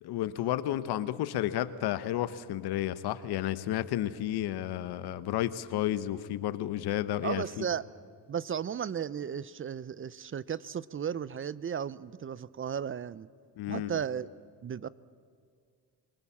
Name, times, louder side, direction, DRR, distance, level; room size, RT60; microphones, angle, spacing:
voice 1, 0.0-7.6 13.6-14.0, left 12 dB, 75° left, 15 dB, 1.0 m, -32 dB
voice 2, 7.2-7.8 8.3-13.3 13.7-14.3 14.6-14.9, right 8 dB, 30° right, 19 dB, 0.5 m, -35 dB
24.0 x 19.0 x 7.3 m, 2.1 s
cardioid pair, 80°, 39 cm